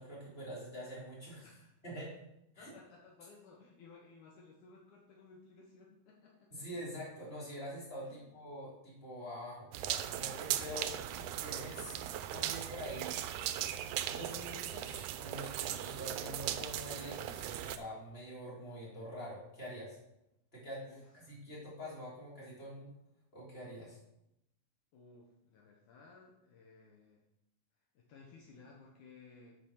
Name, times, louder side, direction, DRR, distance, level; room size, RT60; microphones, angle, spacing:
voice 1, 0.0-1.5 1.8-2.2 2.5-2.7 6.5-11.9 12.3-13.1 14.1-20.0 20.5-21.0 21.3-22.9 23.3-24.0, equal, 15° left, -6 dB, 3.2 m, -45 dB
voice 2, 1.4-1.8 2.6-6.7 8.0-8.3 20.9-21.4 24.9-27.2 27.9-29.6, left 4 dB, 70° left, -1 dB, 2.4 m, -58 dB
sound 1, 9.7-17.8, right 12 dB, 80° right, 1.8 m, -38 dB
7.3 x 5.7 x 6.3 m, 0.84 s
omnidirectional pair, 3.9 m